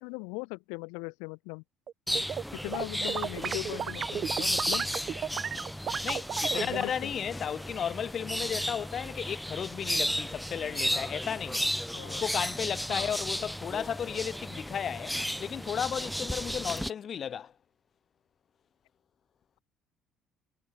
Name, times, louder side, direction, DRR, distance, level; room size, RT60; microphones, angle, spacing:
voice 1, 0.0-1.6 2.5-4.8 6.5-7.1 11.9-12.2 12.9-13.1, left 35 dB, 85° left, 1.7 m, -39 dB
sound 1, 1.9-2.4 2.7-6.9, right 8 dB, 50° right, 0.3 m, -34 dB
sound 2, 2.1-16.9, equal, ahead, 1.9 m, -34 dB
voice 2, 6.0-11.7 12.1-17.5, left 8 dB, 50° left, 1.6 m, -34 dB
sound 3, 7.3-9.3 11.2-13.4 15.1-17.1, left 3 dB, 20° left, 7.9 m, -55 dB
supercardioid pair, 80°, 0 cm